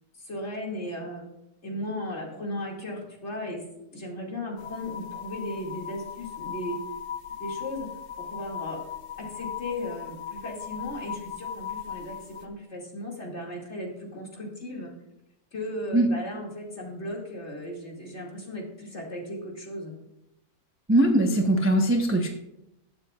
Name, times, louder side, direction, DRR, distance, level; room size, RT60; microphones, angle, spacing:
voice 1, 0.1-1.2 1.6-3.6 3.9-6.8 7.4-7.9 8.2-8.8 9.2-14.9 15.5-20.0, left 1 dB, 40° left, -2 dB, 2.7 m, -36 dB
sound 1, 4.6-12.5, left 8 dB, 65° left, 1.2 m, -38 dB
voice 2, 20.9-22.3, right 1 dB, 15° right, 2 dB, 0.6 m, -21 dB
20.5 x 7.5 x 2.4 m, 0.85 s
omnidirectional pair, 1.8 m